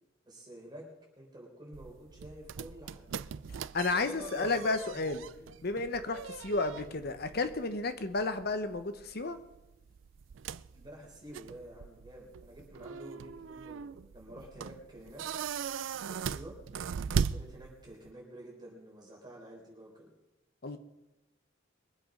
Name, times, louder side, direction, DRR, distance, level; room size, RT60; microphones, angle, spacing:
voice 1, 0.2-0.8 1.2-3.1 3.9-5.5 10.7-15.2 16.1-16.5 17.2-20.1, right 1 dB, 25° right, -2 dB, 4.0 m, -49 dB
sound 1, 1.7-18.1, right 6 dB, 80° right, 0.4 m, -40 dB
voice 2, 3.7-5.2 5.6-9.4 20.6-20.8, left 3 dB, 55° left, 10 dB, 1.1 m, -32 dB
22.5 x 8.0 x 5.1 m, 0.99 s
head